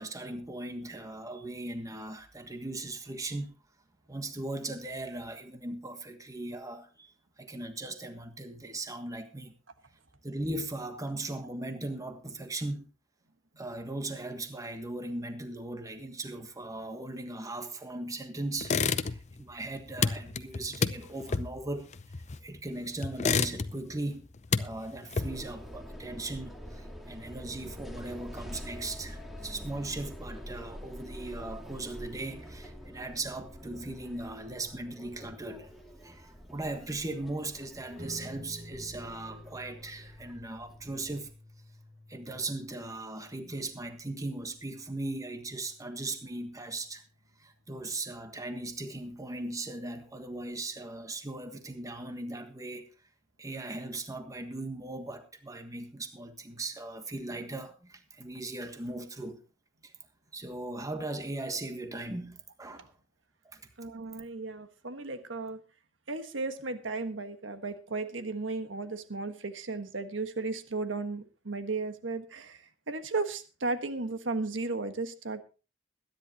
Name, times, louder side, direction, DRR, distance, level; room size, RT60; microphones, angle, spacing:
voice 1, 0.0-3.5 4.1-9.5 10.2-12.9 13.6-21.9 22.4-35.7 36.0-41.3 42.1-47.0 47.4-52.9 53.4-59.4 59.8-59.9 60.3-62.9 63.4-63.6, right 2 dB, 20° right, 1.5 m, -38 dB
sound 1, 18.6-19.4 19.7-22.6 23.0-23.9 24.3-25.6, left 5 dB, 35° left, 0.6 m, -30 dB
sound 2, 25.2-41.3, equal, ahead, 2.1 m, -46 dB
sound 3, 38.0-48.7, equal, 45° right, 2.7 m, -52 dB
voice 2, 63.8-65.6 66.1-75.4, right 3 dB, 80° right, 1.4 m, -35 dB
21.5 x 10.5 x 2.9 m
head